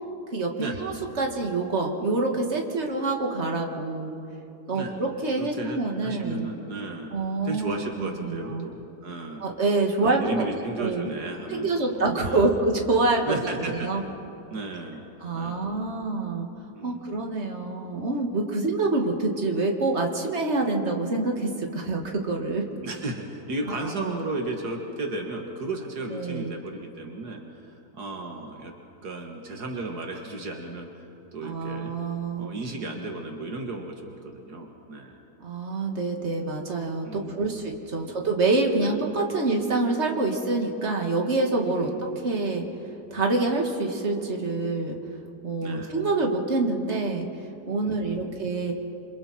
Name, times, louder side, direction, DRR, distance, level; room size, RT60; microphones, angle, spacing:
voice 1, 0.3-4.1 4.7-6.4 7.1-8.7 9.4-11.1 11.5-14.0 15.2-16.5 16.8-22.7 23.8-24.0 26.1-26.5 31.4-32.5 35.4-42.8 43.1-45.0 45.4-48.7, right 3 dB, 40° right, 1 dB, 2.4 m, -26 dB
voice 2, 5.4-7.1 7.4-9.4 10.0-12.5 13.3-13.9 14.5-15.0 15.3-15.7 16.7-17.0 22.8-28.7 29.0-30.9 31.3-31.9 32.4-35.2 37.1-37.6 38.0-38.2 38.8-39.0 41.7-42.0 45.6-46.0 47.8-48.5, right 2 dB, 75° right, 2 dB, 2.2 m, -34 dB
28.0 x 27.0 x 4.4 m, 2.8 s
omnidirectional pair, 1.7 m